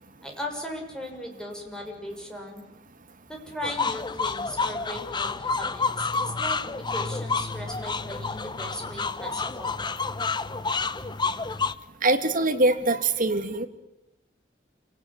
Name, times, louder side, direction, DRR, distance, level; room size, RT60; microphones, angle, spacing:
voice 1, 0.2-2.6 3.3-6.1 6.4-9.8, left 1 dB, 5° left, 1 dB, 6.8 m, -37 dB
sound 1, 3.6-11.7, left 4 dB, 25° left, 0.9 m, -29 dB
voice 2, 12.0-13.7, right 2 dB, 50° right, 6 dB, 2.7 m, -23 dB
27.5 x 18.5 x 9.9 m, 0.88 s
head